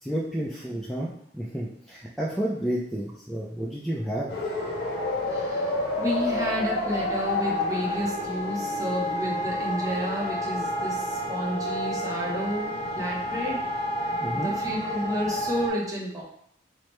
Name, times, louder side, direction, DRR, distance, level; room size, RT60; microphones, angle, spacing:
voice 1, 0.0-4.4 14.2-14.5, right 1 dB, ahead, -5 dB, 0.4 m, -31 dB
sound 1, 4.3-15.7, left 1 dB, 60° left, 0.9 m, -29 dB
voice 2, 5.3-13.6 14.0-16.2, equal, 20° right, -3 dB, 0.8 m, -31 dB
4.7 x 2.1 x 3.0 m, 0.68 s
head